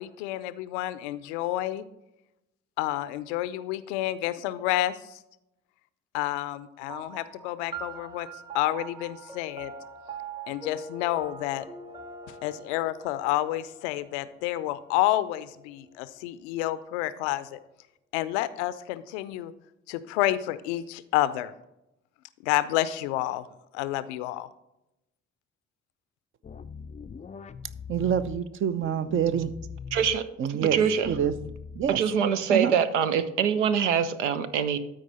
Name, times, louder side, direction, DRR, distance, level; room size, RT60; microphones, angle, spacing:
voice 1, 0.0-1.8 2.8-5.2 6.1-8.3 8.5-9.7 10.5-11.7 12.3-17.6 18.1-19.5 19.9-21.5 22.4-23.5 23.7-24.5, left 15 dB, 70° left, 15 dB, 0.5 m, -29 dB
sound 1, 6.9-15.7, right 4 dB, 10° right, 0.9 m, -43 dB
sound 2, 26.4-28.4 28.8-30.2 30.6-32.2, left 6 dB, 20° left, 0.4 m, -41 dB
voice 2, 27.9-29.5 30.4-31.3 31.8-32.0 32.5-32.7, right 9 dB, 35° right, 14 dB, 0.6 m, -26 dB
voice 3, 29.9-31.2 31.9-34.8, right 7 dB, 80° right, 12 dB, 0.6 m, -24 dB
12.5 x 4.5 x 4.2 m, 0.89 s
figure-of-eight pair, 45°, 35 cm